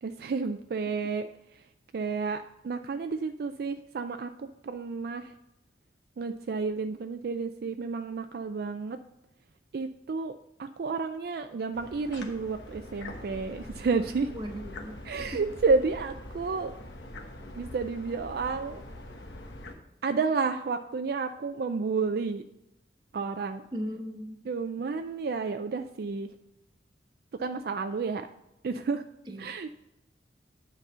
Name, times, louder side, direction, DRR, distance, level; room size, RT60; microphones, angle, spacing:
voice 1, 0.0-1.7 1.9-5.3 6.2-9.0 9.7-14.3 15.1-16.8 17.5-18.8 20.0-22.4 23.1-23.6 24.5-26.3 27.3-28.3 28.6-29.0 29.4-29.7, right 4 dB, 60° right, 8 dB, 0.4 m, -31 dB
sound 1, 11.7-19.7, left 1 dB, 80° left, 1.1 m, -44 dB
voice 2, 14.3-15.4 23.7-24.4 29.3-29.7, equal, 25° right, 2 dB, 1.1 m, -38 dB
9.8 x 4.1 x 5.5 m, 0.87 s
head